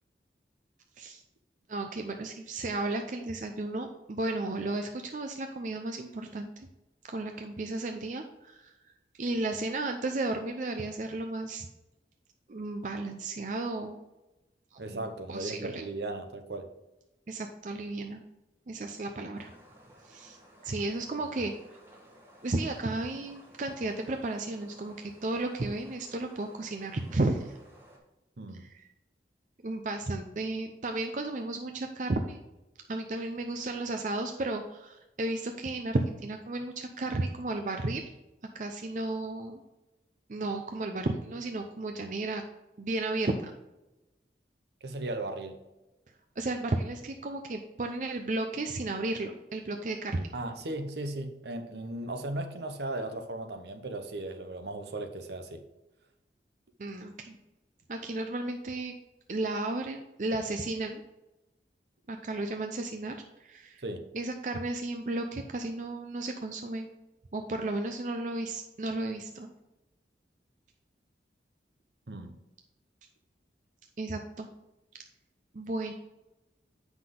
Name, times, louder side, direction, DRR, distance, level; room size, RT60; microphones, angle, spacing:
voice 1, 1.7-6.7 7.1-8.7 9.2-11.7 12.5-14.0 14.9-15.8 17.3-18.2 18.7-19.5 20.1-20.4 20.6-21.5 22.4-27.5 29.6-32.4 32.9-38.0 38.5-39.6 40.3-42.4 42.8-43.5 46.4-50.3 56.8-57.4 57.9-58.9 59.3-61.0 62.1-63.2 63.4-63.8 64.1-66.9 67.3-69.5 74.0-74.5 75.5-75.9, right 2 dB, 45° right, 5 dB, 0.5 m, -33 dB
voice 2, 14.8-16.7 28.4-28.6 44.8-45.6 50.3-55.6 63.8-64.1 72.1-72.3, right 2 dB, 70° right, 7 dB, 0.9 m, -37 dB
sound 1, 19.3-28.0, right 1 dB, 15° right, 1.3 m, -56 dB
7.6 x 5.9 x 3.7 m, 1.0 s
head